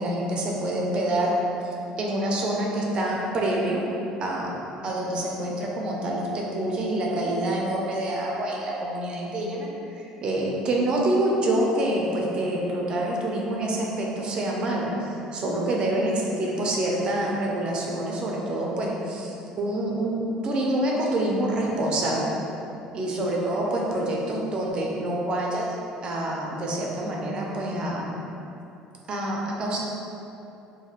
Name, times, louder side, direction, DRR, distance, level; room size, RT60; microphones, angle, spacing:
voice 1, 0.0-1.3 1.6-3.8 4.2-4.6 4.8-22.4 22.9-28.1 29.1-29.8, right 1 dB, 40° right, -2 dB, 0.4 m, -27 dB
3.0 x 2.6 x 2.3 m, 2.8 s
cardioid pair, 120°, 2 cm